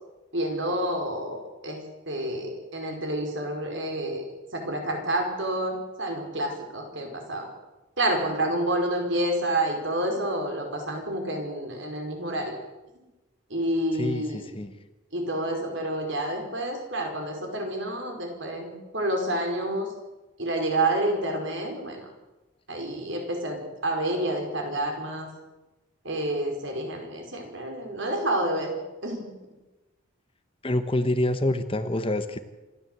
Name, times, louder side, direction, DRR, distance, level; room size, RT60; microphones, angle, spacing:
voice 1, 0.3-4.3 4.5-7.5 8.0-12.6 12.9-13.0 13.5-14.5 15.1-19.9 20.4-22.1 22.7-25.3 26.0-28.7 29.0-29.3, right 1 dB, 60° right, 3 dB, 5.0 m, -29 dB
voice 2, 14.0-14.7 30.6-32.4, left 1 dB, 25° left, 10 dB, 1.0 m, -26 dB
26.0 x 13.0 x 8.0 m, 1.1 s
head